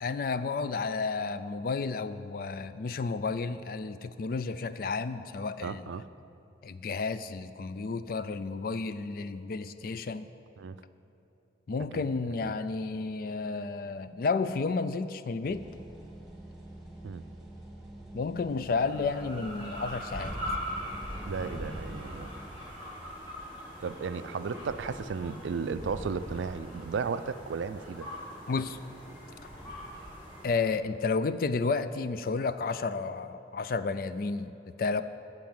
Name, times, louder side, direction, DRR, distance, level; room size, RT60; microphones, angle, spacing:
voice 1, 0.0-5.9 6.6-10.3 11.7-15.6 18.1-20.4 28.5-28.8 30.4-35.0, left 4 dB, 50° left, 12 dB, 0.4 m, -32 dB
voice 2, 5.6-6.1 10.6-10.8 11.9-12.1 12.4-12.5 17.0-17.2 21.3-22.3 23.8-28.1, right 5 dB, 85° right, 13 dB, 0.4 m, -34 dB
sound 1, 15.4-22.4, right 1 dB, 5° right, 1.4 m, -47 dB
sound 2, 18.7-30.6, equal, 25° left, 2.8 m, -41 dB
14.5 x 4.8 x 7.8 m, 2.8 s
head